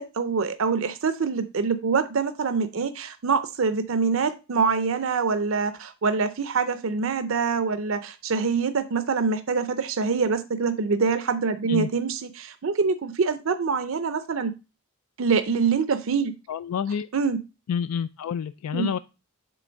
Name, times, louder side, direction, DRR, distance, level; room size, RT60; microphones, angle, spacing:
voice 1, 0.0-14.5 15.2-16.3 17.1-17.4 18.7-18.9, right 5 dB, 65° right, 10 dB, 0.5 m, -25 dB
voice 2, 16.5-17.1 17.7-19.0, left 7 dB, 85° left, 14 dB, 0.3 m, -28 dB
7.7 x 3.4 x 6.2 m, 0.29 s
head